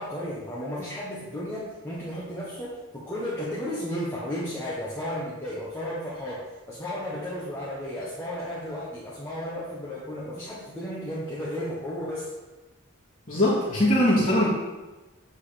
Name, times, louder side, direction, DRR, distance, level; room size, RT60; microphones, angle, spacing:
voice 1, 0.0-6.4 6.7-12.3, equal, 10° left, -8 dB, 1.3 m, -33 dB
voice 2, 13.3-14.5, left 1 dB, 40° left, -8 dB, 1.8 m, -21 dB
8.8 x 4.1 x 5.1 m, 1.1 s
head